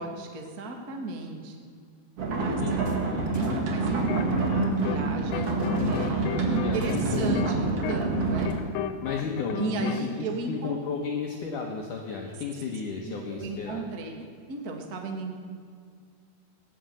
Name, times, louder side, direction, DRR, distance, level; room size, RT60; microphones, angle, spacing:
voice 1, 0.0-1.6 2.3-2.6 3.3-4.1 4.4-5.5 5.9-8.6 9.6-10.8 13.1-14.1 14.5-15.3, right 3 dB, 85° right, 2 dB, 0.8 m, -35 dB
sound 1, 2.2-8.5, right 3 dB, 45° right, 2.4 m, -27 dB
voice 2, 2.6-3.3 6.3-7.3 9.0-9.9 10.2-13.9, left 5 dB, 65° left, 0 dB, 2.3 m, -33 dB
sound 2, 2.7-3.6 4.0-4.9 5.3-8.5, left 2 dB, 45° left, 0.9 m, -44 dB
sound 3, 3.9-5.1 5.3-10.1, left 10 dB, 85° left, 3.0 m, -33 dB
17.0 x 11.0 x 7.7 m, 2.2 s
omnidirectional pair, 5.0 m